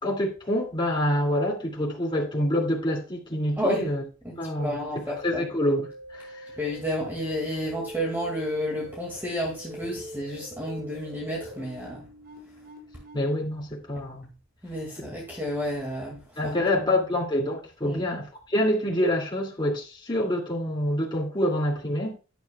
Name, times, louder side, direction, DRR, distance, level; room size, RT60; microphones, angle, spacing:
voice 1, 0.0-4.0 4.4-4.8 5.1-6.5 13.1-14.3 15.0-15.1 16.4-22.2, left 1 dB, 25° left, 2.4 m, -26 dB
voice 2, 3.6-3.9 4.2-5.5 6.6-12.0 14.6-17.0 17.8-18.0, equal, 10° right, 2.1 m, -31 dB
sound 1, 5.6-13.2, equal, 50° right, 4.6 m, -43 dB
12.5 x 10.0 x 2.3 m
head